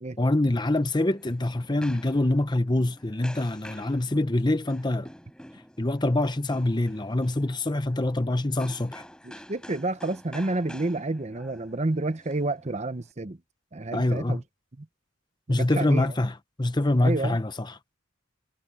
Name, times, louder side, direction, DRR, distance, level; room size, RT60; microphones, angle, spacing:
voice 1, 0.2-5.1 5.8-9.0 13.9-14.4 15.5-17.9, left 1 dB, 20° left, 0.8 m, -25 dB
sound 1, 0.8-13.1, equal, 5° left, 7.2 m, -49 dB
voice 2, 9.2-13.4 13.7-14.4 14.8-14.9 15.5-16.1 17.0-17.4, right 2 dB, 35° right, 0.8 m, -30 dB
head